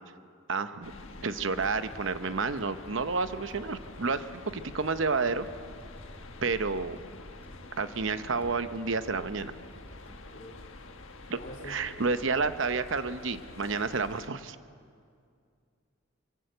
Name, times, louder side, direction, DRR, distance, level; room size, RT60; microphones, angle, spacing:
voice 1, 0.5-0.9 1.2-5.5 6.4-7.0 7.8-9.5 11.3-11.4 11.7-14.6, right 4 dB, 65° right, 11 dB, 0.8 m, -30 dB
sound 1, 0.8-14.3, left 2 dB, 70° left, 1.5 m, -47 dB
sound 2, 1.6-10.5, equal, 10° right, 2.1 m, -55 dB
voice 2, 11.3-11.9 12.4-12.5, left 1 dB, 40° left, 0 dB, 3.7 m, -45 dB
23.0 x 17.0 x 7.8 m, 2.3 s
head